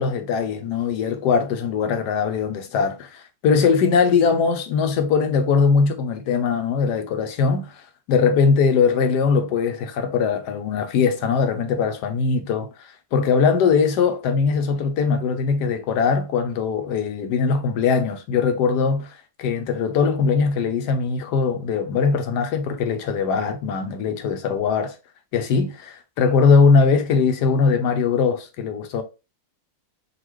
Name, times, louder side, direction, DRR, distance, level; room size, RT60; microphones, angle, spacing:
voice 1, 0.0-7.7 8.1-12.7 13.1-24.9 25.3-29.0, left 5 dB, 85° left, 1.3 m, -21 dB
4.0 x 2.8 x 3.0 m
omnidirectional pair, 1.8 m